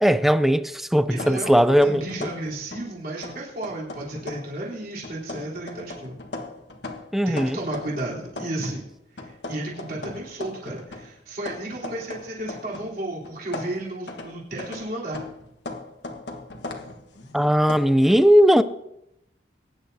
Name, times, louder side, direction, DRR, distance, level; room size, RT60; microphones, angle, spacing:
voice 1, 0.0-2.0 7.1-7.6 17.3-18.6, equal, ahead, 0.5 m, -18 dB
sound 1, 1.1-2.9 3.2-4.6 5.0-8.8 9.2-13.0 13.2-17.8, left 2 dB, 65° left, 1.5 m, -38 dB
voice 2, 1.1-6.2 7.3-8.9 9.1-15.2, right 1 dB, 50° right, 3.7 m, -33 dB
22.5 x 10.5 x 2.8 m
head